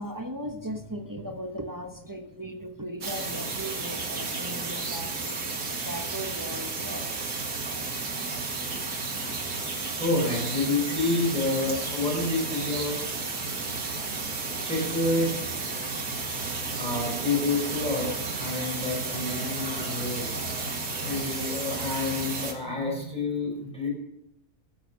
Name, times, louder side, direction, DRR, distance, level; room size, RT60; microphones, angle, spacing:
voice 1, 0.0-5.5 5.8-7.4, equal, 15° right, 4 dB, 1.0 m, -38 dB
sound 1, 3.0-22.5, right 3 dB, 80° right, 2.6 m, -32 dB
voice 2, 10.0-13.0 14.6-15.3 16.8-20.3 21.0-23.9, left 3 dB, 5° left, -3 dB, 4.5 m, -28 dB
13.0 x 8.9 x 7.0 m, 0.81 s
omnidirectional pair, 1.6 m